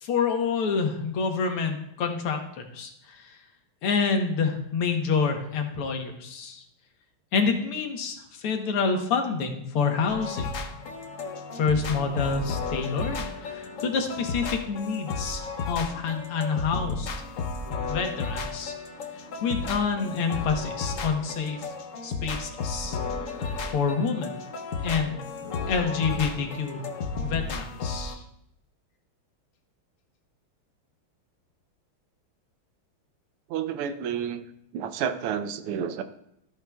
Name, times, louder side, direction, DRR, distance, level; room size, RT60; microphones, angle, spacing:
voice 1, 0.0-3.4 3.8-6.6 7.3-10.5 11.5-17.1 17.7-18.7 19.4-21.7 22.0-23.0 23.7-24.4 24.8-25.2 25.7-26.8 27.2-28.2, left 5 dB, 85° left, 4 dB, 2.0 m, -28 dB
sound 1, 10.1-28.1, left 4 dB, 65° left, 0.8 m, -33 dB
voice 2, 33.5-34.4 34.7-36.0, right 8 dB, 90° right, 10 dB, 1.6 m, -30 dB
13.5 x 9.4 x 2.3 m, 0.77 s
omnidirectional pair, 2.4 m